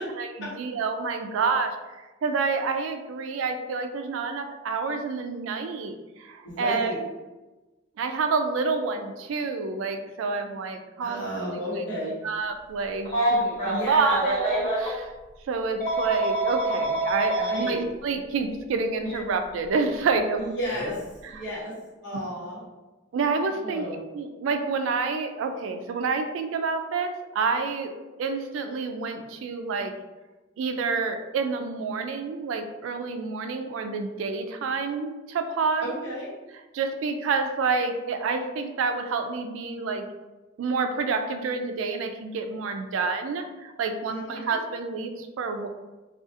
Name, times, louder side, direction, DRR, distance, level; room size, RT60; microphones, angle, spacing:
voice 1, 0.2-1.8 2.2-6.9 8.0-11.2 11.8-15.1 15.5-20.4 23.1-23.9 24.1-27.9 28.2-29.9 30.6-35.8 36.7-40.0 40.6-45.7, right 4 dB, 75° right, 7 dB, 0.3 m, -28 dB
voice 2, 6.4-7.0 11.0-12.2 13.6-14.2 17.4-17.8 20.4-21.7 22.0-22.7 23.6-24.0 35.8-36.3 44.1-44.5, equal, 65° left, -7 dB, 1.1 m, -33 dB
Telephone, 13.0-14.9 15.8-17.7 19.0-19.2 20.7-20.9, right 1 dB, 45° left, 1.4 m, -26 dB
2.4 x 2.3 x 2.5 m, 1.1 s
head